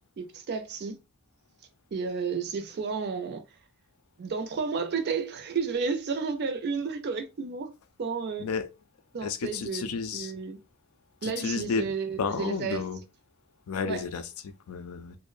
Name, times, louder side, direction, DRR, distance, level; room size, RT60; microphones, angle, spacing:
voice 1, 0.2-1.0 1.9-3.4 4.2-7.7 8.0-8.5 9.1-9.8 10.1-10.6 11.2-12.8 13.9-14.0, right 5 dB, 50° right, 0.4 m, -32 dB
voice 2, 9.2-10.3 11.2-13.0 13.7-15.2, left 5 dB, 90° left, 0.4 m, -32 dB
2.5 x 2.1 x 2.3 m
head